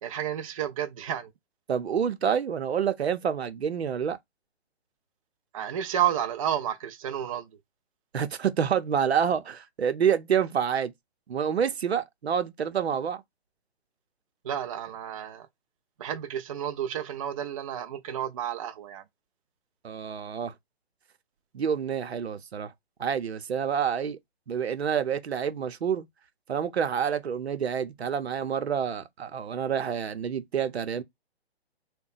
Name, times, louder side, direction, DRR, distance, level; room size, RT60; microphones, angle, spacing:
voice 1, 0.0-1.3 5.5-7.5 14.4-15.5 16.0-19.0, right 10 dB, 35° right, 0.4 m, -31 dB
voice 2, 1.7-4.2 8.1-10.9 11.3-13.2 19.8-20.5 21.5-22.7 23.0-24.2 24.5-26.1 26.5-31.0, right 7 dB, 80° right, 0.7 m, -28 dB
2.8 x 2.2 x 3.9 m
hypercardioid pair, 140°, 32 cm